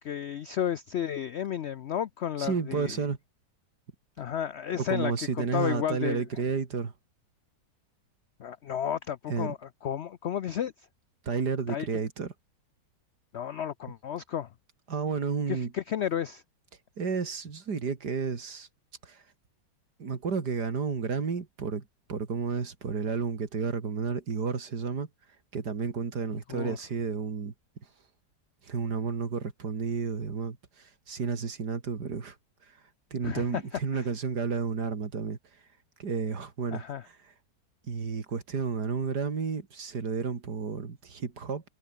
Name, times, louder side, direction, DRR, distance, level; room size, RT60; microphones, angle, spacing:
voice 1, 0.0-3.0 4.2-5.1 5.4-6.2 8.4-10.7 11.7-11.9 13.3-14.5 15.5-16.4 26.5-26.8 33.2-33.4 33.9-34.0 36.7-37.0, left 9 dB, 80° left, 0.6 m, -32 dB
voice 2, 2.4-3.2 4.7-6.9 9.3-9.5 11.2-12.3 14.9-15.7 17.0-18.7 19.0-19.2 20.0-21.8 22.1-25.1 25.5-27.5 28.6-32.4 33.1-35.4 36.0-37.2 37.9-41.6, right 5 dB, 65° right, 2.9 m, -31 dB
omnidirectional pair, 1.9 m